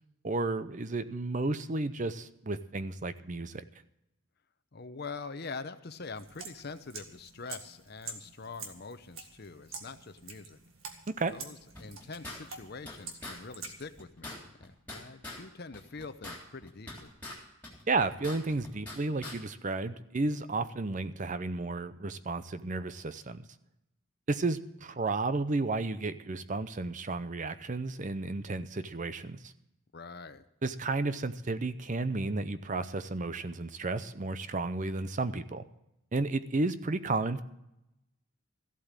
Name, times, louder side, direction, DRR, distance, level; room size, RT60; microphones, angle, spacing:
voice 1, 0.2-3.6 11.1-11.3 17.9-23.4 24.3-29.5 30.6-35.6 36.1-37.4, right 3 dB, 35° right, 13 dB, 0.6 m, -32 dB
voice 2, 4.7-10.6 11.3-17.1 29.9-30.4, left 4 dB, 50° left, 11 dB, 0.8 m, -44 dB
sound 1, 6.1-14.0, right 4 dB, 75° right, 1.9 m, -47 dB
sound 2, 11.7-13.0 13.2-13.4 13.6-13.7 14.0-15.4 15.7-17.4 17.6-19.0 19.2-19.4, left 2 dB, 10° left, 3.4 m, -43 dB
14.5 x 8.4 x 7.4 m, 0.84 s
head